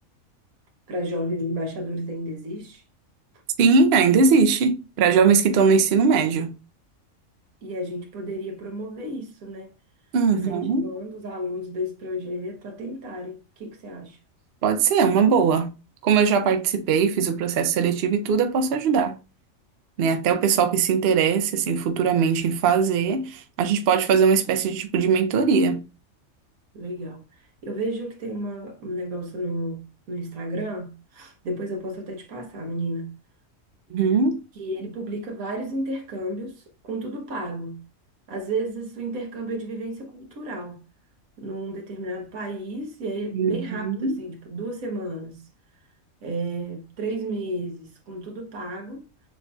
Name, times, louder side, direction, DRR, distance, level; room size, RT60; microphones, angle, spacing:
voice 1, 0.9-2.8 7.6-9.7 10.3-14.2 26.7-27.2 27.6-33.1 34.6-37.8 38.3-40.8 41.4-43.9 44.2-45.4 46.2-49.0, right 1 dB, 90° right, 1.5 m, -32 dB
voice 2, 3.6-6.5 10.1-10.9 14.6-15.7 16.0-19.2 20.0-25.8 33.9-34.4 43.3-44.2, right 5 dB, 60° right, 0.7 m, -20 dB
6.5 x 2.8 x 2.2 m
omnidirectional pair, 1.4 m